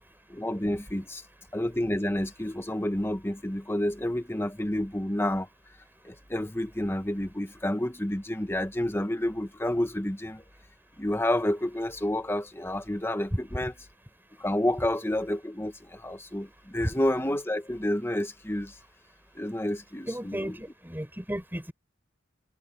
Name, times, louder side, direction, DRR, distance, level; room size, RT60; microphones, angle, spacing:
voice 1, 0.3-1.2 1.5-5.5 6.0-10.4 11.0-13.7 14.4-18.7 19.3-20.6, left 1 dB, 15° left, 1.5 m, -29 dB
voice 2, 20.1-21.7, equal, 10° right, 5.8 m, -35 dB
head